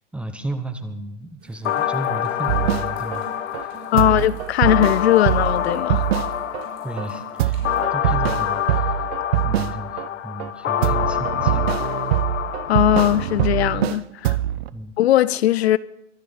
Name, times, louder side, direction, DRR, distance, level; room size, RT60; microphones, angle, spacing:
voice 1, 0.1-3.3 3.5-4.2 6.8-9.0 9.4-11.8 14.7-15.0, right 1 dB, 5° right, 0.7 m, -33 dB
Amb - Goteres, 1.4-7.8, right 8 dB, 40° right, 4.8 m, -47 dB
sound 1, 1.6-13.6, left 10 dB, 80° left, 0.9 m, -26 dB
sound 2, 2.5-3.2 3.5-3.6 4.0-6.6 7.0-7.1 7.4-10.1 10.4-14.0 14.2-14.7, right 13 dB, 55° right, 0.8 m, -23 dB
voice 2, 3.9-6.1 12.7-14.4 15.0-15.8, left 13 dB, 60° left, 0.6 m, -19 dB
23.0 x 7.7 x 5.5 m
hypercardioid pair, 140°, 37 cm